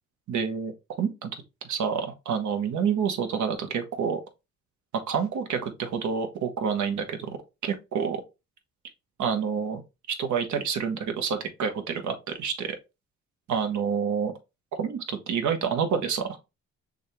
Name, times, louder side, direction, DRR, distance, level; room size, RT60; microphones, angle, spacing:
voice 1, 0.3-0.7 1.0-1.3 1.6-4.2 5.1-7.4 7.6-8.2 9.2-9.8 10.2-12.8 13.5-14.3 14.8-16.4, right 6 dB, 70° right, 1.2 m, -28 dB
6.3 x 2.4 x 3.2 m
cardioid pair, 90°, 30 cm